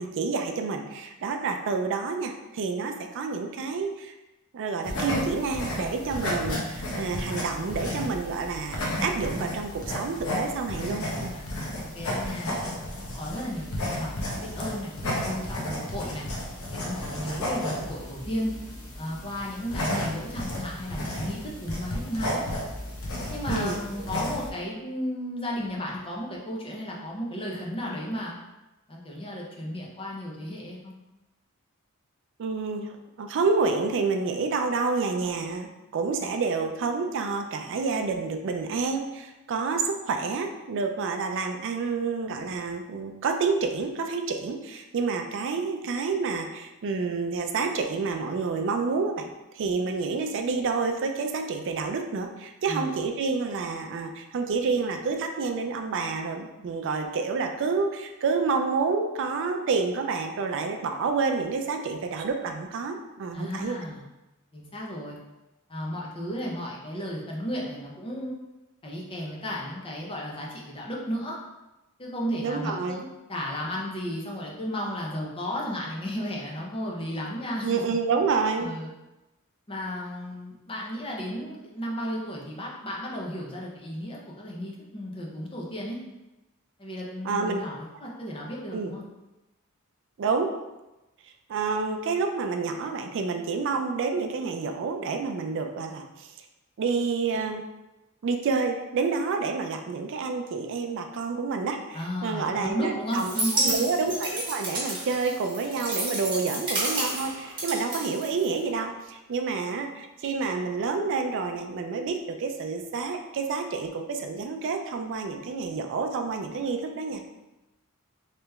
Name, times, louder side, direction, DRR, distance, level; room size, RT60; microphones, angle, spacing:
voice 1, 0.0-4.1 4.5-11.3 23.4-23.8 32.4-63.8 72.3-73.0 77.6-78.7 87.2-87.6 88.7-88.9 90.2-90.5 91.5-96.3 96.8-97.6 98.2-103.3 103.6-117.2, right 4 dB, 60° right, 4 dB, 0.4 m, -29 dB
sound 1, 4.8-24.5, left 1 dB, 70° left, 0.8 m, -33 dB
voice 2, 11.3-12.6 13.1-16.3 16.7-18.5 19.0-22.4 23.3-28.3 28.9-30.9 52.7-53.0 63.3-64.0 64.5-65.2 65.7-68.3 68.8-71.4 72.0-73.0 73.3-77.8 78.6-78.9 79.7-86.0 86.8-89.0 101.9-103.8, equal, 25° left, -3 dB, 0.7 m, -34 dB
sound 2, 103.1-108.8, right 2 dB, 25° right, 1.1 m, -31 dB
3.3 x 2.9 x 3.4 m, 1.0 s
head